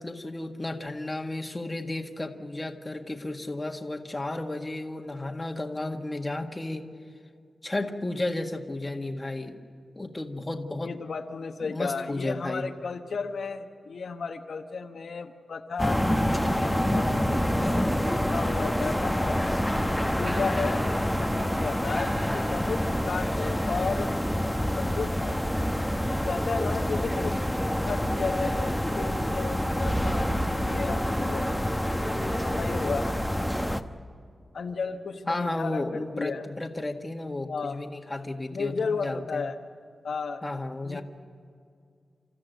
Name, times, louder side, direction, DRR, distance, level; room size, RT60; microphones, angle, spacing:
voice 1, 0.0-6.9 7.6-9.6 9.9-10.9 11.7-12.7 35.3-39.4 40.4-41.0, left 2 dB, 20° left, 3 dB, 1.6 m, -33 dB
voice 2, 10.8-16.0 16.6-17.9 18.1-19.5 20.2-20.8 21.2-24.1 24.7-25.4 26.1-27.4 27.8-31.5 32.0-33.1 34.5-36.4 37.4-37.8 38.5-39.6 40.0-40.4 40.8-41.0, left 5 dB, 75° left, 5 dB, 1.1 m, -34 dB
sound 1, 15.8-33.8, equal, ahead, 1.0 m, -27 dB
29.0 x 14.0 x 9.2 m, 2.3 s
wide cardioid pair, 115°, 0 cm